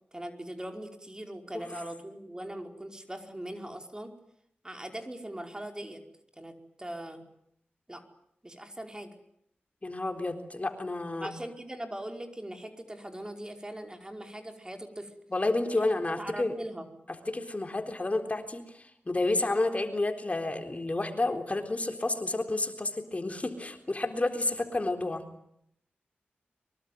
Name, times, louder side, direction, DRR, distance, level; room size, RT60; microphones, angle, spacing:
voice 1, 0.1-4.1 4.6-6.0 6.4-7.2 7.9-8.0 8.4-9.1 11.2-15.1 15.7-15.8 16.2-16.9, right 1 dB, 20° right, 5 dB, 5.0 m, -41 dB
voice 2, 9.8-11.3 15.3-16.5 17.3-18.7 19.1-25.2, left 2 dB, 35° left, 6 dB, 3.9 m, -30 dB
24.0 x 24.0 x 9.4 m, 0.73 s
cardioid pair, 55°, 4 cm